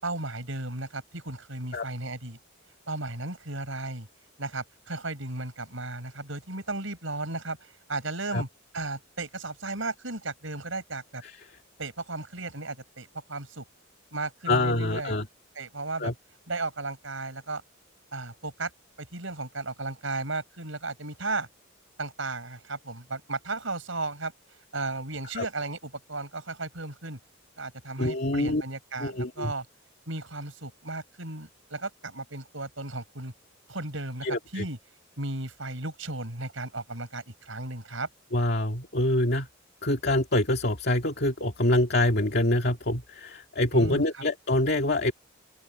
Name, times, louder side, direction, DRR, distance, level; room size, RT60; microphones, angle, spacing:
voice 1, 0.0-2.4 2.9-4.1 4.4-8.5 8.7-11.2 11.8-13.6 14.1-15.2 15.6-16.1 16.5-17.6 18.1-18.7 19.0-21.5 22.0-24.3 24.7-27.2 27.6-29.7 30.1-33.3 33.7-34.8 35.2-38.1 43.7-44.1, right 2 dB, 70° right, 6.9 m, -35 dB
voice 2, 14.5-15.2 16.0-16.1 25.4-25.5 28.0-28.6 29.0-29.5 34.2-34.7 38.3-39.5 39.8-45.1, left 1 dB, 55° left, 2.3 m, -25 dB
open air
head